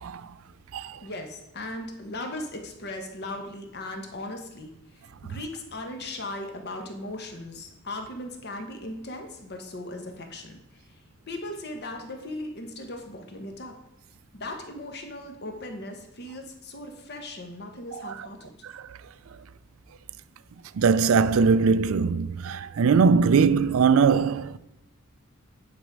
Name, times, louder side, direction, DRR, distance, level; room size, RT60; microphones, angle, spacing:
voice 1, 1.0-11.0 11.3-13.7 14.3-18.5, left 1 dB, 50° left, 1.3 m, -38 dB
voice 2, 20.8-24.6, right 5 dB, 75° right, 0.4 m, -21 dB
9.4 x 5.2 x 4.7 m
head